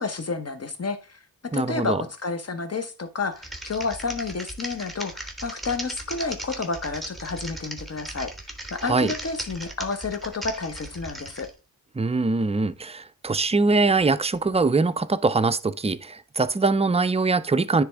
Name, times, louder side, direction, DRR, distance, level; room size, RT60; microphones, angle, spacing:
voice 1, 0.0-8.3 8.7-11.5, left 4 dB, 40° left, 1.1 m, -30 dB
voice 2, 1.5-2.0 8.8-9.1 12.0-17.8, right 3 dB, 15° right, 0.4 m, -22 dB
Typing, 3.3-11.5, right 1 dB, ahead, 1.3 m, -37 dB
9.8 x 3.4 x 3.5 m
wide cardioid pair, 75°, 38 cm